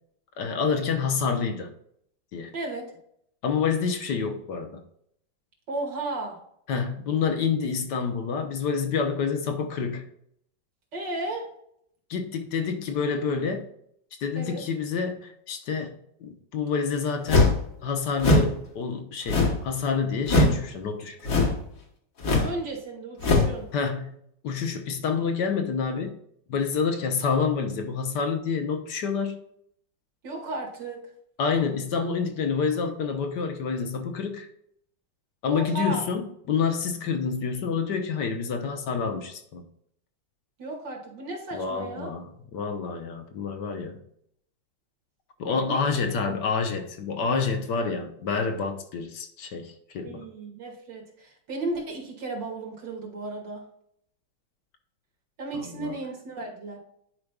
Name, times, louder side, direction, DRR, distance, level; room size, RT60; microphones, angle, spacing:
voice 1, 0.4-1.7 2.3-2.5 3.4-4.8 6.7-10.0 12.1-13.6 14.2-17.5 17.8-21.5 23.7-24.1 24.4-26.1 26.5-29.4 31.4-34.5 35.4-36.2 36.5-39.6 41.5-42.3 42.5-44.0 45.4-50.2 55.5-56.0, left 5 dB, 70° left, 6 dB, 1.5 m, -28 dB
voice 2, 2.5-2.9 5.7-6.4 10.9-11.5 14.4-14.6 22.4-23.7 30.2-31.0 35.4-36.0 40.6-42.1 45.5-45.8 46.2-46.4 50.0-53.6 55.4-56.8, right 2 dB, 70° right, 0 dB, 2.5 m, -34 dB
sound 1, 17.3-17.6 18.2-18.5 19.3-19.7 20.2-20.6 21.2-21.6 22.2-22.5 23.2-23.5, left 2 dB, 50° left, 1.7 m, -21 dB
10.5 x 5.1 x 2.3 m, 0.70 s
omnidirectional pair, 2.0 m